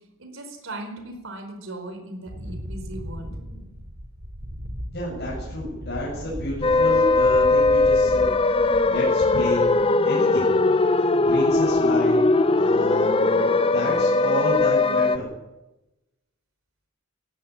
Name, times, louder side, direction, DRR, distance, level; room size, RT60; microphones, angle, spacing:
voice 1, 0.2-3.4, right 1 dB, 65° right, 7 dB, 4.7 m, -38 dB
Wind, 2.3-9.1 9.4-9.9, equal, 45° right, 3.1 m, -37 dB
voice 2, 4.9-8.3 8.9-9.7 10.0-10.5 11.2-12.2 12.5-15.3, equal, 55° left, -5 dB, 8.0 m, -30 dB
sound 1, 6.6-15.2, left 3 dB, 25° left, 0.7 m, -20 dB
17.5 x 17.5 x 8.7 m, 1.0 s
head